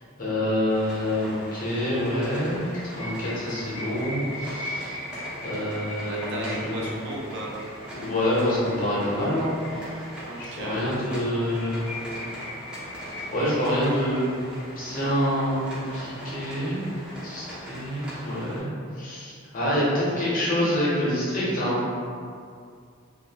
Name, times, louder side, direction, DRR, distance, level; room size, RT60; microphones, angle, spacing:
voice 1, 0.2-5.0 5.4-6.9 7.9-9.9 10.4-11.9 13.3-14.4 14.8-15.6 15.9-16.8 17.2-21.8, equal, 40° left, -7 dB, 0.9 m, -27 dB
Heavy Rain, 0.7-18.6, equal, 5° right, 0.5 m, -41 dB
sound 1, 2.6-10.4 10.8-10.9 11.2-11.3 11.5-14.6, left 1 dB, 65° left, 0.7 m, -39 dB
voice 2, 6.0-7.6 10.3-10.8, right 1 dB, 60° right, -3 dB, 0.5 m, -35 dB
2.7 x 2.5 x 2.8 m, 2.3 s
head